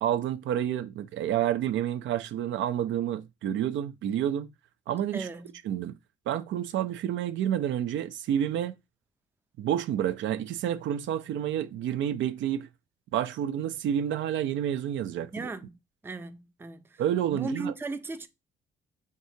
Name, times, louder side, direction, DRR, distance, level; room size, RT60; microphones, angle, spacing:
voice 1, 0.0-4.5 4.9-5.3 5.6-5.9 6.3-8.7 9.6-12.7 13.1-15.3 17.0-17.7, right 10 dB, 75° right, 0.4 m, -29 dB
voice 2, 5.1-5.5 15.3-17.0 17.3-18.3, right 3 dB, 10° right, 0.4 m, -37 dB
4.7 x 2.7 x 2.7 m
cardioid pair, 90°, 20 cm